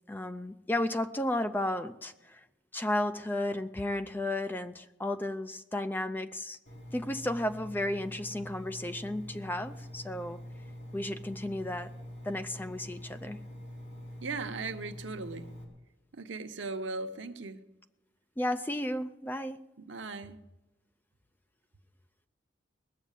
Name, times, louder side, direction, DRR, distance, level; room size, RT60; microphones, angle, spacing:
voice 1, 0.1-2.4 2.7-6.6 6.9-10.4 10.9-11.9 12.2-13.4 18.4-19.6, left 1 dB, 10° left, 0.4 m, -33 dB
Engine, 6.7-15.6, equal, 65° left, 3.9 m, -45 dB
voice 2, 14.2-15.5 16.1-17.6 19.8-20.4, right 3 dB, 85° right, 0.9 m, -38 dB
20.0 x 7.3 x 9.0 m
head